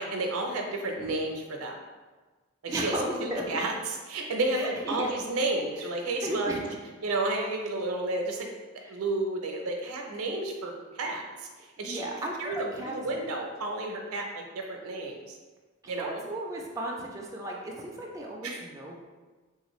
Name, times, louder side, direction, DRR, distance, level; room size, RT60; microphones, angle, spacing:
voice 1, 0.0-1.8 2.6-6.6 7.0-8.5 8.9-12.0 12.4-15.4 15.9-16.2 18.4-18.6, right 2 dB, 90° right, 2 dB, 0.5 m, -31 dB
voice 2, 2.7-3.6 4.5-5.1 6.2-6.7 11.8-12.9 15.8-19.0, right 1 dB, 15° right, -2 dB, 0.3 m, -35 dB
3.3 x 2.4 x 3.0 m, 1.3 s
head